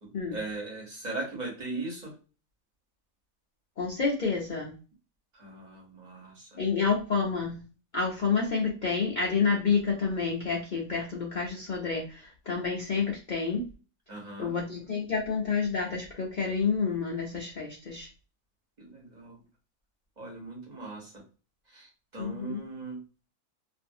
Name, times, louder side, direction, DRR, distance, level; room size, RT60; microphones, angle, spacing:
voice 1, 0.0-2.1 5.3-6.6 14.1-14.5 18.8-19.4 20.2-21.2 21.7-23.0, right 2 dB, 30° right, -2 dB, 1.1 m, -39 dB
voice 2, 3.8-4.7 6.6-7.6 7.9-13.6 14.4-18.1 22.2-22.6, left 5 dB, 85° left, -1 dB, 0.4 m, -29 dB
2.6 x 2.5 x 2.6 m, 0.35 s
omnidirectional pair, 1.6 m